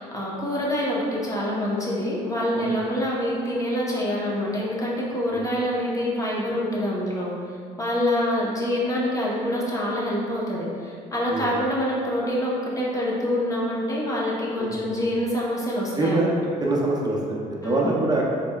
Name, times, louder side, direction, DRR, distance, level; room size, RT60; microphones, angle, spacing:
voice 1, 0.0-7.3 7.8-16.4 17.6-17.9, left 1 dB, 20° left, -5 dB, 1.0 m, -26 dB
voice 2, 14.6-15.0 16.0-16.3 16.6-18.3, right 2 dB, 25° right, -3 dB, 0.7 m, -25 dB
4.1 x 3.0 x 2.3 m, 2.3 s
supercardioid pair, 80°, 16 cm